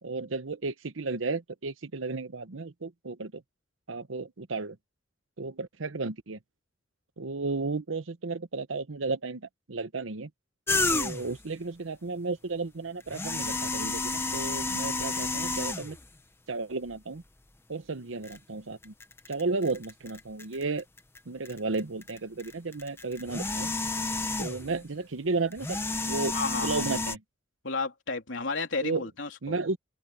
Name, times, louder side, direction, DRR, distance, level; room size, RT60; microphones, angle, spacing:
voice 1, 0.0-3.4 3.9-4.8 5.4-6.4 7.2-10.3 10.8-16.0 16.5-17.2 17.7-18.9 19.3-20.8 21.3-23.7 24.4-25.8 26.1-26.4 26.6-27.2 28.8-29.1 29.4-29.8, right 3 dB, 90° right, 0.9 m, -33 dB
sound 1, 10.7-11.4 13.0-16.1 16.9-17.0 18.2-18.4 18.8-21.2 21.5-24.8 25.5-27.2, left 3 dB, 10° left, 0.9 m, -31 dB
voice 2, 26.3-27.0 27.6-29.5, left 3 dB, 75° left, 3.4 m, -32 dB
open air
head